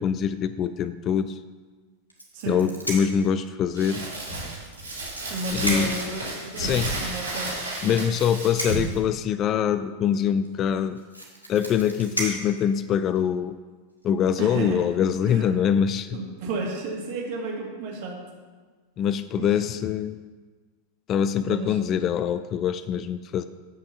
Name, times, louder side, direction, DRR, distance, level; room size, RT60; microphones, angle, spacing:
voice 1, 0.0-1.4 2.5-4.1 5.5-5.9 6.6-7.0 7.8-11.0 11.5-13.6 14.0-16.2 19.0-20.2 21.1-23.4, left 8 dB, 30° left, 14 dB, 0.3 m, -24 dB
sound 1, 2.1-3.2 4.5-6.1 7.5-9.0 10.4-10.5 10.8-13.2 14.0-14.3 14.6-14.8, right 1 dB, 90° left, 1.8 m, -34 dB
voice 2, 2.3-2.6 5.3-8.0 14.4-14.8 15.2-15.4 16.1-18.2 19.4-19.7 21.4-21.8, right 3 dB, 45° right, -1 dB, 2.2 m, -33 dB
Crumpling crinkling, 3.7-9.0, right 1 dB, 75° right, 3.2 m, -32 dB
8.9 x 6.1 x 5.7 m, 1.4 s
figure-of-eight pair, 90°, 0 cm